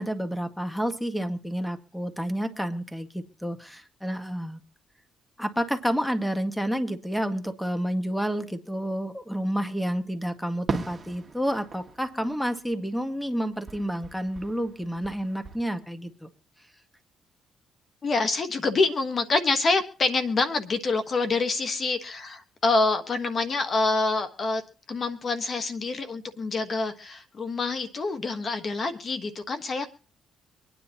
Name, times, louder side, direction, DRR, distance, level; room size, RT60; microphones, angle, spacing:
voice 1, 0.0-4.6 5.4-16.3, equal, 5° left, 8 dB, 1.5 m, -30 dB
Fireworks, 10.7-13.3 13.6-15.6, right 4 dB, 30° right, 1.6 m, -38 dB
voice 2, 18.0-24.6 24.9-29.9, left 3 dB, 45° left, 8 dB, 1.2 m, -26 dB
25.0 x 10.0 x 2.9 m, 0.38 s
cardioid pair, 90°, 0 cm